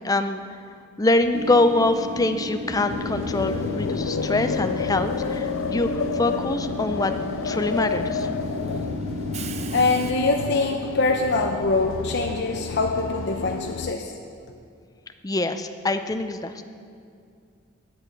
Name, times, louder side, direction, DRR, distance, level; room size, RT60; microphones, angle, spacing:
voice 1, 0.0-0.4 1.0-7.1 7.4-8.3 15.2-16.6, left 2 dB, 15° left, 8 dB, 0.5 m, -24 dB
Train / Subway metro underground, 1.3-10.1, right 1 dB, 30° right, 0.6 m, -33 dB
sound 1, 2.9-13.9, left 6 dB, 75° left, 0.4 m, -30 dB
voice 2, 9.7-14.1, left 3 dB, 55° left, 2 dB, 0.7 m, -23 dB
10.0 x 8.4 x 8.4 m, 2.3 s
head